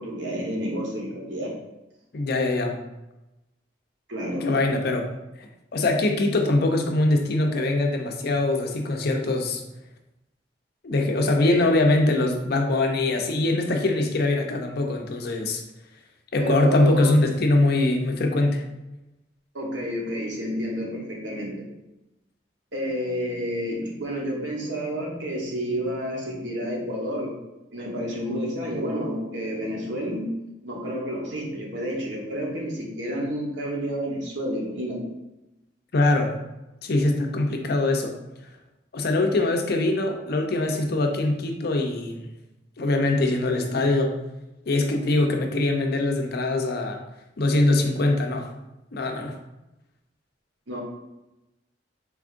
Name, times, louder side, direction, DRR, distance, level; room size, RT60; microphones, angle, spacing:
voice 1, 0.0-1.5 4.1-4.5 11.4-11.7 16.4-17.1 19.5-21.7 22.7-27.3 27.7-30.3 30.6-35.0 50.7-50.8, equal, 75° right, -2 dB, 1.1 m, -30 dB
voice 2, 2.1-2.8 4.4-5.1 5.4-9.6 10.8-15.6 16.3-18.6 35.9-36.3 36.8-38.1 38.9-42.3 42.8-44.2 44.7-47.0 47.4-48.5 48.9-49.3, left 2 dB, 60° left, 3 dB, 0.6 m, -23 dB
4.7 x 3.5 x 2.5 m, 0.95 s
head